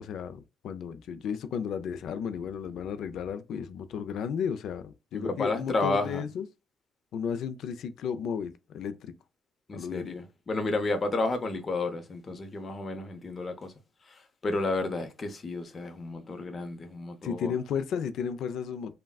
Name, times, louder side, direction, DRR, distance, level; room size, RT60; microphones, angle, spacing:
voice 1, 0.0-6.5 7.1-9.1 9.7-10.1 17.2-18.9, left 7 dB, 70° left, 0.4 m, -33 dB
voice 2, 5.1-6.2 9.7-13.7 14.1-14.2 14.4-17.5, left 2 dB, 30° left, 0.6 m, -31 dB
3.5 x 2.2 x 2.2 m
cardioid pair, 115°, 0 cm